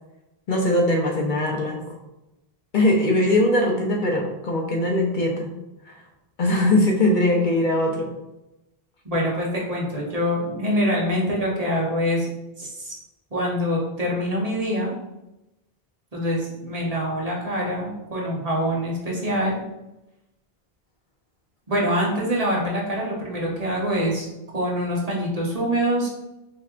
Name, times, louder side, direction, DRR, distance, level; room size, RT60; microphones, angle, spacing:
voice 1, 0.5-1.8 2.7-5.5 5.9-6.0 6.4-8.1, left 1 dB, 60° left, 1 dB, 0.7 m, -21 dB
voice 2, 9.0-12.3 12.6-12.9 13.3-14.9 16.1-19.6 21.7-24.3 24.5-26.1, equal, 40° right, -4 dB, 1.0 m, -25 dB
4.3 x 3.2 x 2.4 m, 0.95 s
omnidirectional pair, 1.0 m